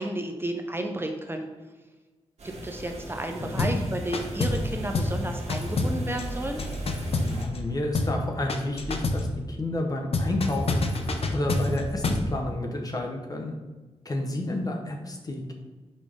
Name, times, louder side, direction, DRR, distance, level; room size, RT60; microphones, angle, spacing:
voice 1, 0.0-1.5 2.4-6.6, right 1 dB, 20° right, 4 dB, 0.5 m, -32 dB
sound 1, 2.4-7.4, right 1 dB, 80° right, 1.4 m, -40 dB
sound 2, 3.6-3.8 4.1-4.7 4.9-5.2 5.5-7.7 7.9-8.2 8.5-9.3 10.1-12.3, left 2 dB, 60° left, 0.6 m, -27 dB
voice 2, 7.2-13.5 14.0-15.5, left 1 dB, 35° left, 2 dB, 0.9 m, -31 dB
5.3 x 5.1 x 3.5 m, 1.3 s
wide cardioid pair, 95°, 11 cm